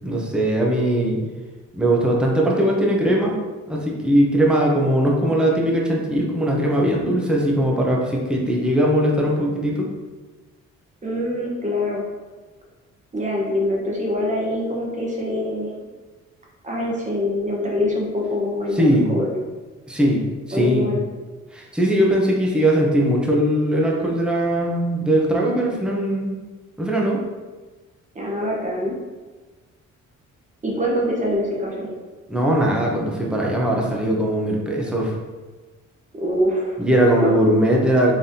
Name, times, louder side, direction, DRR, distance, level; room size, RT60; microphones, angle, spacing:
voice 1, 0.0-1.2 1.7-3.3 3.7-9.9 18.7-19.1 19.9-20.2 20.5-21.0 21.5-26.3 26.8-27.2 32.3-35.2 36.8-38.1, right 1 dB, 5° right, -2 dB, 0.7 m, -20 dB
voice 2, 11.0-12.0 13.1-15.9 16.6-19.3 20.5-21.0 28.1-28.9 30.6-31.9 36.1-37.3, left 1 dB, 25° right, -3 dB, 1.2 m, -24 dB
4.1 x 3.3 x 2.7 m, 1.3 s
cardioid pair, 90°, 30 cm